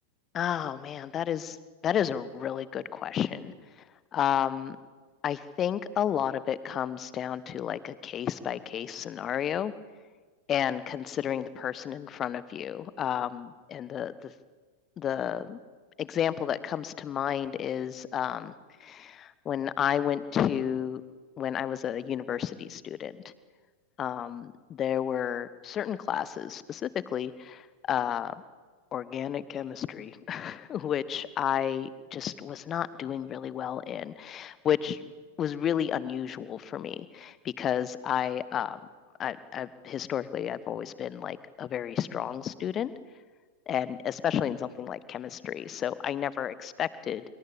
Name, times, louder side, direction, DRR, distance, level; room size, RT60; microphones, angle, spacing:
voice 1, 0.3-1.6 1.8-3.5 4.1-4.8 5.2-9.7 10.5-14.3 15.0-15.6 16.0-18.5 18.8-21.0 21.4-23.1 24.0-28.3 28.9-35.0 35.4-38.8 39.2-42.9 43.7-47.2, left 9 dB, 30° left, 17 dB, 1.3 m, -31 dB
26.0 x 24.0 x 8.7 m, 1.4 s
figure-of-eight pair, 90°, 0 cm